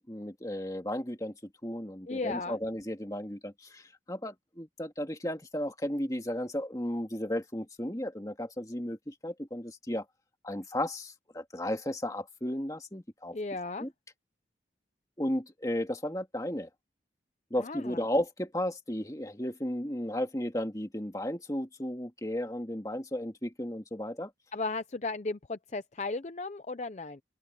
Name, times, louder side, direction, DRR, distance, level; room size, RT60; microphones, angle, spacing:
voice 1, 0.0-1.3 1.6-10.1 10.4-13.4 13.8-13.9 15.2-16.7 17.5-24.3, left 1 dB, 20° left, 2.0 m, -34 dB
voice 2, 2.1-2.6 13.3-13.9 17.6-18.0 24.5-27.2, left 3 dB, 40° left, 0.6 m, -35 dB
open air
head